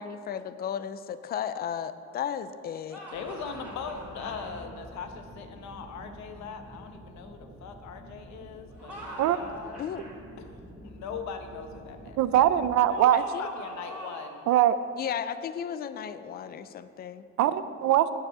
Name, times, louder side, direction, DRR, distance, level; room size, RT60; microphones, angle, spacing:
voice 1, 0.0-3.0 9.8-10.0 13.1-13.5 15.0-17.3, left 8 dB, 35° left, 13 dB, 0.4 m, -34 dB
sound 1, 2.9-4.6 8.7-10.1 12.9-14.4, equal, 5° right, 2.6 m, -43 dB
voice 2, 3.1-9.8 10.8-12.2 12.9-14.5, left 6 dB, 70° left, 6 dB, 1.1 m, -40 dB
sound 2, 3.1-12.8, right 1 dB, 25° right, 2.2 m, -48 dB
voice 3, 12.2-13.2 14.5-14.8 17.4-18.1, right 12 dB, 70° right, 13 dB, 0.5 m, -22 dB
9.9 x 6.9 x 7.5 m, 2.6 s
cardioid pair, 155°, 29 cm